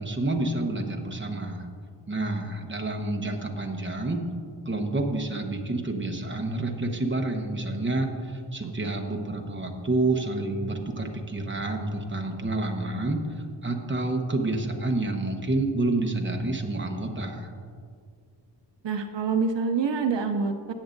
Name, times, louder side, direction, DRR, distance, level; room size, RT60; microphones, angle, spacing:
voice 1, 0.0-1.7 2.1-4.2 4.6-13.2 13.6-17.5, right 2 dB, 25° right, 3 dB, 1.0 m, -28 dB
voice 2, 8.6-9.0 18.8-20.7, right 5 dB, 70° right, 6 dB, 0.6 m, -27 dB
17.5 x 7.9 x 2.6 m, 2.2 s
wide cardioid pair, 85°, 45 cm